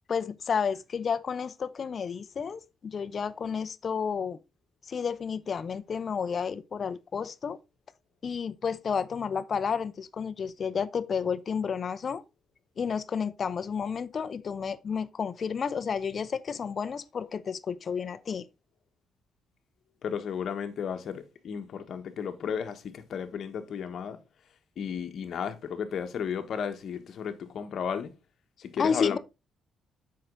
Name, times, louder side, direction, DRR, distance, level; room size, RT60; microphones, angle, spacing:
voice 1, 0.1-4.4 4.8-7.6 8.2-12.2 12.8-18.5 28.8-29.2, left 6 dB, 45° left, 0.7 m, -31 dB
voice 2, 20.0-24.2 24.8-28.1 28.6-29.2, left 7 dB, 60° left, 1.3 m, -34 dB
7.7 x 5.8 x 3.8 m
cardioid pair, 90°, 0 cm